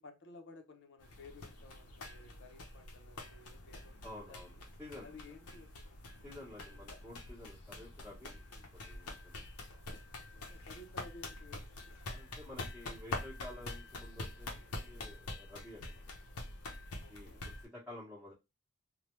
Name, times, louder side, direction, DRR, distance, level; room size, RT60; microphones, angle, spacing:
voice 1, 0.0-4.6 5.0-6.0 6.5-7.0 10.1-12.0 17.0-17.5, left 3 dB, 55° left, 0.7 m, -56 dB
sound 1, 1.0-17.6, left 2 dB, 90° left, 0.7 m, -46 dB
voice 2, 4.0-5.1 6.2-9.4 12.1-16.1 17.1-18.3, left 1 dB, 5° right, 0.9 m, -51 dB
3.3 x 2.2 x 2.9 m
head